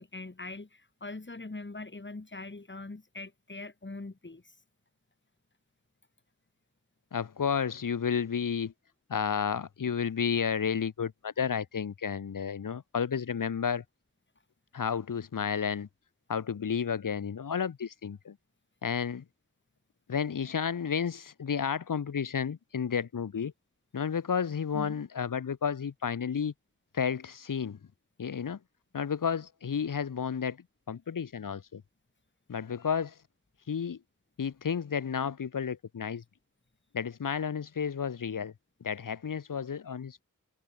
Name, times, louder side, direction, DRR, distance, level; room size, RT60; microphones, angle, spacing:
voice 1, 0.0-4.5 24.7-25.0, left 2 dB, 35° left, 3.8 m, -42 dB
voice 2, 7.1-8.7 9.1-13.8 14.7-15.9 16.3-18.3 18.8-19.2 20.1-23.5 23.9-26.5 26.9-27.8 28.2-28.6 28.9-30.6 30.9-31.8 32.5-33.1 33.7-34.0 34.4-36.2 36.9-38.5 38.8-40.2, left 7 dB, 70° left, 1.3 m, -31 dB
cardioid pair, 40°, 33 cm